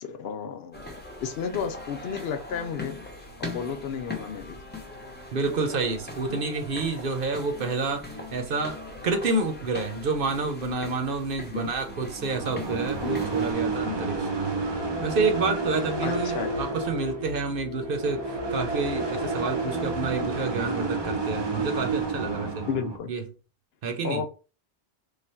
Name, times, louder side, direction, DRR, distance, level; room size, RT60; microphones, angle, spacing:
voice 1, 0.0-3.0 3.4-4.6 6.3-6.4 11.5-11.6 13.0-13.2 16.0-16.5 22.7-23.1 24.0-24.3, left 7 dB, 75° left, 0.8 m, -32 dB
sound 1, 0.7-13.5, left 2 dB, 10° left, 0.7 m, -41 dB
voice 2, 5.3-8.0 8.3-8.8 9.0-14.5 15.0-22.7 23.1-23.2 23.8-24.2, right 3 dB, 60° right, 0.9 m, -29 dB
sound 2, 11.9-23.0, right 3 dB, 30° right, 0.7 m, -30 dB
3.2 x 2.4 x 4.3 m
omnidirectional pair, 1.0 m